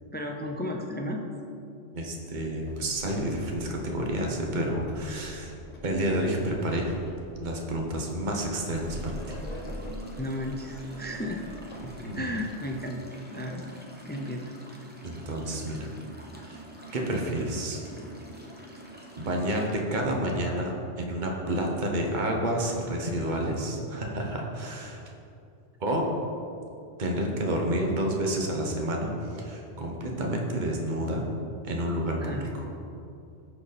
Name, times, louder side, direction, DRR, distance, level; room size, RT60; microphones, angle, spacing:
voice 1, 0.1-1.2 10.2-11.4 12.1-13.1 13.3-13.7 14.1-14.5 32.2-32.5, left 1 dB, 15° left, 2 dB, 0.4 m, -33 dB
voice 2, 1.9-5.5 5.8-6.9 7.4-9.4 11.8-12.4 15.0-15.9 16.4-16.6 16.9-17.8 19.2-25.0 25.8-26.1 27.0-31.2 31.6-32.5, right 1 dB, 40° right, 0 dB, 1.2 m, -29 dB
Sliding door, 2.6-12.7, equal, 40° left, 0.9 m, -44 dB
sound 1, 8.7-19.7, right 1 dB, 10° right, 0.8 m, -46 dB
14.0 x 4.8 x 4.2 m, 2.6 s
omnidirectional pair, 1.2 m